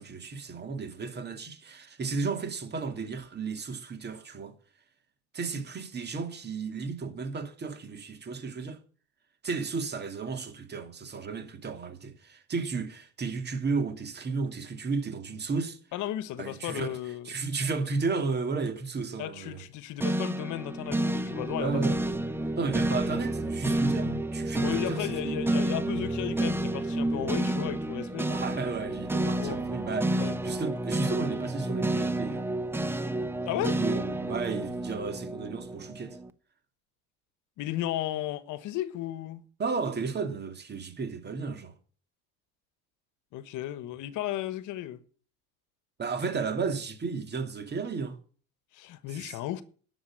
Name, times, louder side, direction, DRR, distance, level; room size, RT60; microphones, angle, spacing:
voice 1, 0.0-4.5 5.3-8.8 9.4-15.8 16.4-17.0 17.2-19.6 21.6-22.0 22.6-25.3 28.3-32.4 33.6-36.2 39.6-41.7 46.0-48.2 49.1-49.4, right 4 dB, 30° right, 2.4 m, -33 dB
voice 2, 15.9-17.3 19.2-21.8 24.6-28.3 29.3-29.6 30.1-30.4 33.4-33.8 37.6-39.4 43.3-45.0 48.7-49.6, left 13 dB, 60° left, 1.3 m, -34 dB
sound 1, 20.0-36.3, right 1 dB, 5° right, 0.9 m, -30 dB
11.0 x 7.3 x 8.7 m
cardioid pair, 120°, 34 cm